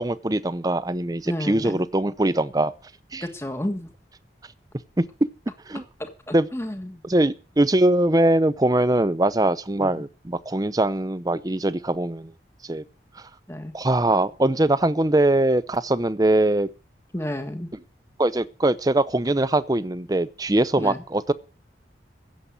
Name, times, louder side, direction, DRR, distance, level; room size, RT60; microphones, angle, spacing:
voice 1, 0.0-2.7 3.1-3.2 5.0-5.3 5.7-5.8 6.3-6.5 7.0-12.3 12.6-12.8 13.2-13.3 13.7-16.7 18.2-21.3, right 1 dB, 20° right, 0.7 m, -22 dB
voice 2, 1.2-1.8 3.2-3.9 6.0-7.0 9.8-10.0 13.5-13.7 17.1-17.7 20.8-21.0, left 1 dB, 15° left, 1.5 m, -31 dB
15.5 x 7.5 x 8.2 m
head